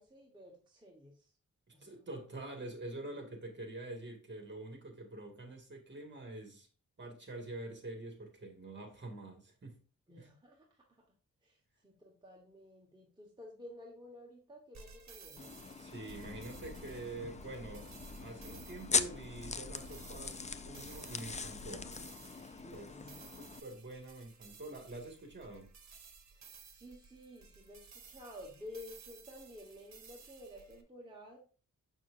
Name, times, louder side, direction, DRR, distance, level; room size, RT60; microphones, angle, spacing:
voice 1, 0.0-1.3 1.7-1.9 10.1-11.0 11.4-15.5 22.6-23.3 26.3-31.4, left 1 dB, 15° right, 1.4 m, -52 dB
voice 2, 1.7-6.7 7.0-9.8 10.2-10.3 15.8-17.9 18.2-21.9 22.7-22.9 23.4-25.7, right 2 dB, 35° right, 2.0 m, -46 dB
sound 1, 14.7-30.8, right 5 dB, 60° right, 1.1 m, -57 dB
sound 2, 15.4-23.6, left 5 dB, 25° left, 0.4 m, -41 dB
sound 3, 16.1-22.1, left 2 dB, 80° left, 1.2 m, -52 dB
6.7 x 6.2 x 2.6 m
wide cardioid pair, 105°, 31 cm